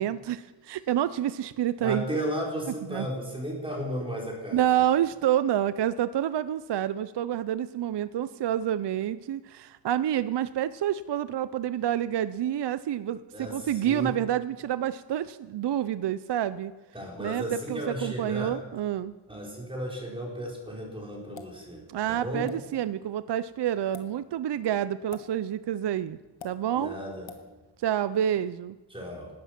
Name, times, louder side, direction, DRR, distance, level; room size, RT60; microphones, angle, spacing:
voice 1, 0.0-2.1 2.9-3.1 4.5-16.7 17.2-19.1 21.9-26.2 26.4-27.0 27.8-28.8, right 11 dB, 65° right, 14 dB, 0.5 m, -28 dB
voice 2, 1.8-4.8 13.3-14.1 16.9-18.5 19.3-22.5 26.8-27.3 28.9-29.3, equal, 10° right, -2 dB, 4.2 m, -34 dB
sound 1, 21.4-21.6 22.5-22.6 23.8-24.1 25.1-25.3 26.4-26.5 27.3-27.4, left 6 dB, 80° left, 1.5 m, -43 dB
17.5 x 13.0 x 5.9 m, 1.2 s
wide cardioid pair, 140°, 45 cm